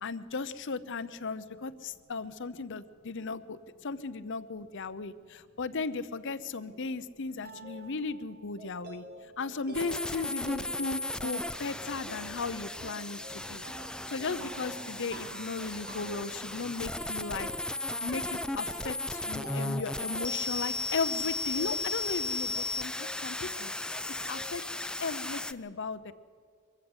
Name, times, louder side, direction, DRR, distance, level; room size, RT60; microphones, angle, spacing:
voice 1, 0.0-9.0 9.4-13.6 14.1-17.5 18.0-23.7 24.3-24.6 25.0-26.1, left 4 dB, 55° left, 14 dB, 0.8 m, -36 dB
voice 2, 4.8-5.6 7.4-7.9 8.6-9.4 13.0-14.7 22.7-23.5 23.9-24.3 25.6-25.8, left 1 dB, 40° left, -3 dB, 4.9 m, -60 dB
sound 1, 6.6-21.4, right 3 dB, 45° right, 1.9 m, -50 dB
sound 2, 7.6-8.1 8.6-9.5 10.0-10.9 11.3-12.3 12.8-13.8 14.2-15.1 15.6-16.6 17.0-17.9 18.4-19.3 19.7-20.6 21.1-22.1 22.5-23.6 23.9-24.6, left 2 dB, 25° right, 1.1 m, -52 dB
sound 3, 9.7-25.5, left 2 dB, 5° left, 0.4 m, -36 dB
23.5 x 14.0 x 8.0 m, 2.1 s
head